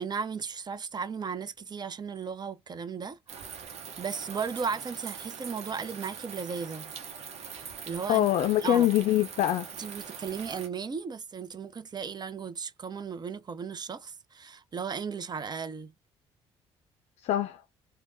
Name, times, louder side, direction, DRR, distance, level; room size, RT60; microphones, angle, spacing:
voice 1, 0.0-3.2 4.0-6.9 7.5-8.3 8.6-8.9 9.8-15.9, right 6 dB, 35° right, 0.6 m, -36 dB
sound 1, 3.3-10.7, right 7 dB, 60° right, 0.9 m, -43 dB
voice 2, 8.1-9.7 17.2-17.6, left 13 dB, 60° left, 0.4 m, -24 dB
3.2 x 2.2 x 2.6 m
hypercardioid pair, 50°, 13 cm